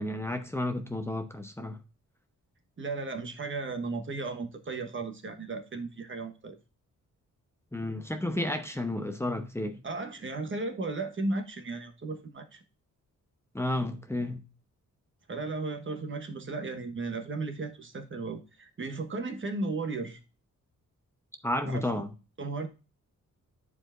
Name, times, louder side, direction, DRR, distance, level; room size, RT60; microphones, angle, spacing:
voice 1, 0.0-1.8 7.7-9.8 13.5-14.4 21.4-22.1, left 1 dB, 10° left, 0.8 m, -32 dB
voice 2, 2.8-6.6 9.8-12.6 15.3-20.2 21.6-22.0 22.4-22.7, right 3 dB, 40° right, 1.3 m, -35 dB
10.5 x 4.7 x 2.5 m
wide cardioid pair, 115°, 31 cm